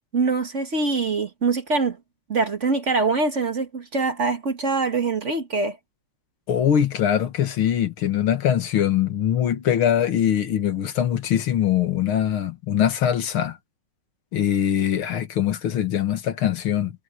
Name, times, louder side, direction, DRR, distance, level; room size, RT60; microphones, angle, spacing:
voice 1, 0.1-2.0 2.3-5.8, right 4 dB, 35° right, 1.9 m, -23 dB
voice 2, 6.5-13.6 14.3-16.9, left 10 dB, 85° left, 2.3 m, -22 dB
omnidirectional pair, 2.3 m